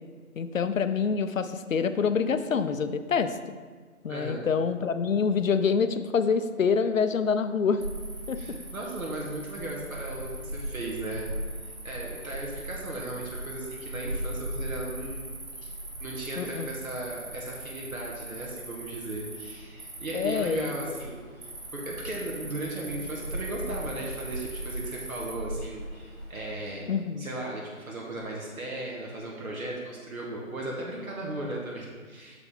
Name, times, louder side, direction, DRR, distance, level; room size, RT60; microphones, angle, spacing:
voice 1, 0.4-3.4 4.0-7.8 8.3-8.4 16.4-16.7 20.1-20.7 26.9-27.2, left 6 dB, 65° left, 11 dB, 0.5 m, -26 dB
voice 2, 4.1-4.5 8.4-11.3 11.6-15.3 15.6-15.7 16.0-32.4, right 2 dB, 70° right, -3 dB, 1.4 m, -36 dB
Cricket, 7.8-26.7, right 1 dB, 40° right, 1.2 m, -38 dB
6.7 x 4.9 x 3.6 m, 1.5 s
figure-of-eight pair, 165°, 43 cm